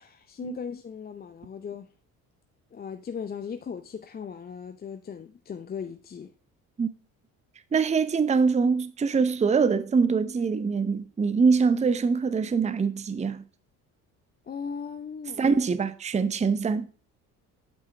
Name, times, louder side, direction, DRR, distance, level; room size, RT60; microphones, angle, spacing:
voice 1, 0.0-1.9 2.7-6.3 14.4-15.7, left 6 dB, 20° left, 0.6 m, -38 dB
voice 2, 7.7-13.4 15.4-16.9, right 5 dB, 15° right, 0.7 m, -24 dB
8.6 x 5.4 x 4.8 m
figure-of-eight pair, 50°, 45 cm